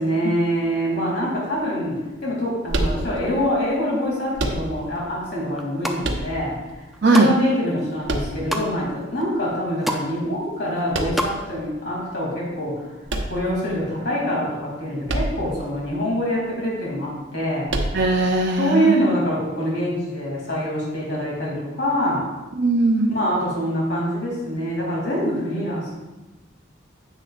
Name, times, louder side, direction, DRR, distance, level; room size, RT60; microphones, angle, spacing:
voice 1, 0.0-12.9 13.2-17.8 18.6-22.3 23.1-25.9, equal, 65° left, -4 dB, 2.8 m, -25 dB
sound 1, 2.7-3.5 4.3-5.1 6.0-6.7 8.0-8.9 10.9-11.5 13.1-13.9 15.1-15.6 15.9-16.0 17.7-18.3, right 1 dB, 75° right, 1.0 m, -27 dB
sound 2, 5.6-6.0 6.6-7.3 7.7-8.7 9.2-9.3 9.5-10.1 10.4-11.3 11.6-11.7, right 1 dB, ahead, 0.5 m, -28 dB
voice 2, 7.0-7.3 17.9-18.9 22.6-23.1, right 2 dB, 55° right, 1 dB, 0.6 m, -18 dB
9.8 x 8.2 x 2.5 m, 1.1 s
head